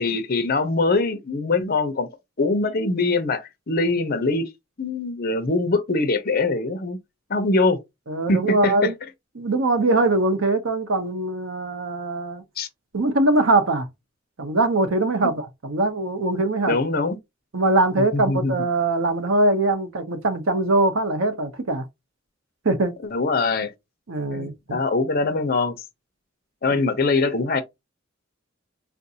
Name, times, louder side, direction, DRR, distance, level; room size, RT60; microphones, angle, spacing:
voice 1, 0.0-2.1 2.4-4.5 4.8-7.0 7.3-7.8 8.3-8.9 12.6-12.7 15.2-15.3 16.6-17.2 18.1-18.5 23.1-23.7 24.3-25.7 26.6-27.6, left 3 dB, 50° left, 0.7 m, -23 dB
voice 2, 8.1-8.9 9.4-12.4 12.9-13.9 14.4-16.8 17.5-21.9 22.6-23.0 24.1-24.8 26.7-26.8, right 2 dB, 85° right, 0.8 m, -22 dB
3.7 x 2.6 x 2.7 m
head